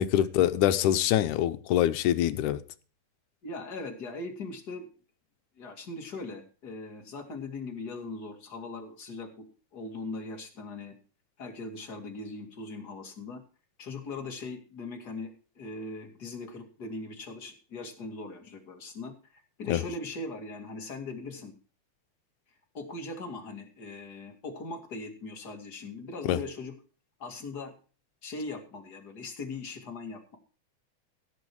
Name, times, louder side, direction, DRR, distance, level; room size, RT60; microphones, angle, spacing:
voice 1, 0.0-2.6 19.7-19.8 26.3-26.4, left 12 dB, 85° left, 2.3 m, -24 dB
voice 2, 3.4-4.9 5.6-10.9 11.4-13.4 13.8-21.5 22.7-26.7 27.2-27.7 28.2-30.4, left 3 dB, 35° left, 2.7 m, -40 dB
16.0 x 7.9 x 4.7 m
omnidirectional pair, 3.5 m